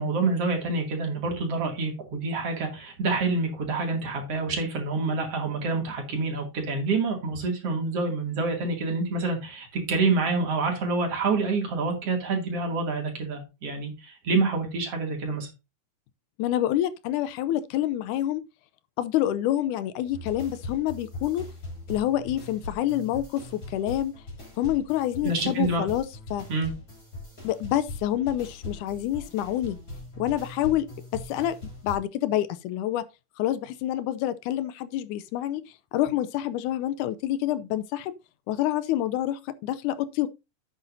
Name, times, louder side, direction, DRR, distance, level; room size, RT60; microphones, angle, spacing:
voice 1, 0.0-15.5 25.2-25.8 26.5-26.7, right 3 dB, 50° right, 3.3 m, -27 dB
voice 2, 16.4-18.4 19.0-21.5 21.9-24.1 24.6-26.5 27.4-29.8 30.2-30.9 31.1-31.6 31.8-33.1 33.4-35.6 35.9-38.1 38.5-40.3, left 12 dB, 85° left, 2.1 m, -27 dB
sound 1, 20.1-32.0, left 2 dB, 25° left, 6.2 m, -41 dB
10.5 x 8.4 x 2.7 m
omnidirectional pair, 3.6 m